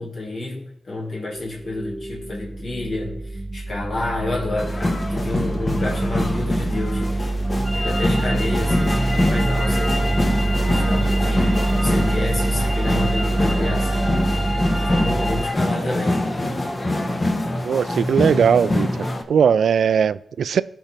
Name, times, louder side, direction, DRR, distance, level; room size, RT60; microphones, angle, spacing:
voice 1, 0.0-7.4 7.7-16.2, left 2 dB, 65° left, -2 dB, 2.7 m, -29 dB
sound 1, 1.3-15.4, right 2 dB, 25° right, 0.8 m, -24 dB
sound 2, 4.6-19.2, left 1 dB, 40° left, 1.4 m, -25 dB
sound 3, 7.6-15.5, left 1 dB, ahead, 2.7 m, -31 dB
voice 2, 17.6-18.9 19.3-20.6, right 7 dB, 80° right, 17 dB, 0.3 m, -18 dB
13.0 x 4.5 x 4.4 m, 0.80 s
supercardioid pair, 45°, 0 cm